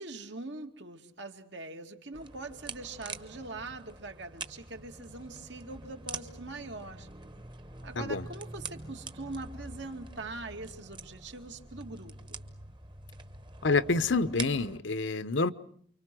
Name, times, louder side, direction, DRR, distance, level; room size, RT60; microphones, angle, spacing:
voice 1, 0.0-7.1 7.8-12.4, right 3 dB, 65° right, 2.4 m, -42 dB
sound 1, 2.1-14.8, right 3 dB, 25° right, 1.2 m, -45 dB
voice 2, 13.6-15.5, left 3 dB, 75° left, 1.0 m, -27 dB
29.5 x 24.5 x 6.2 m
head